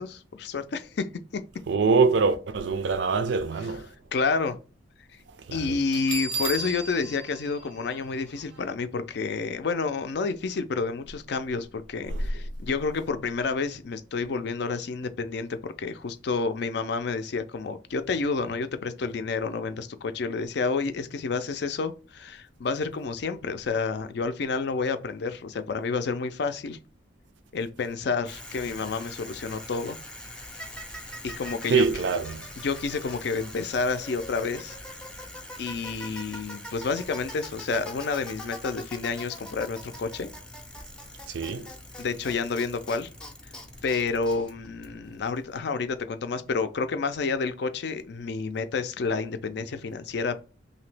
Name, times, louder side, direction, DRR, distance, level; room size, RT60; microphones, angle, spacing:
voice 1, 0.0-1.4 4.1-4.6 5.5-26.8 27.5-30.0 31.2-31.9 32.6-34.8 35.6-40.3 42.0-43.1 43.8-50.4, left 4 dB, 60° left, 0.4 m, -29 dB
voice 2, 1.7-3.9 5.5-5.8 12.1-12.2 31.7-32.5 41.3-41.7, right 4 dB, 65° right, 0.4 m, -24 dB
Bell, 5.9-8.6, right 3 dB, 90° right, 0.8 m, -35 dB
Bicycle, 28.2-45.3, left 1 dB, 5° left, 0.5 m, -42 dB
2.9 x 2.7 x 3.3 m
head